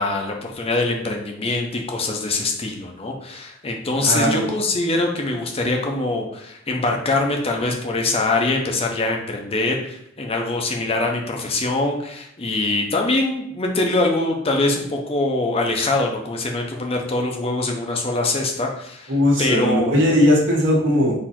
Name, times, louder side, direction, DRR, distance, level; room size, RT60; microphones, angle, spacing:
voice 1, 0.0-19.1 19.4-20.0, left 2 dB, 30° left, 1 dB, 0.6 m, -23 dB
voice 2, 4.1-4.5 19.1-21.1, left 1 dB, 65° right, -3 dB, 1.4 m, -18 dB
4.1 x 2.8 x 4.3 m, 0.77 s
head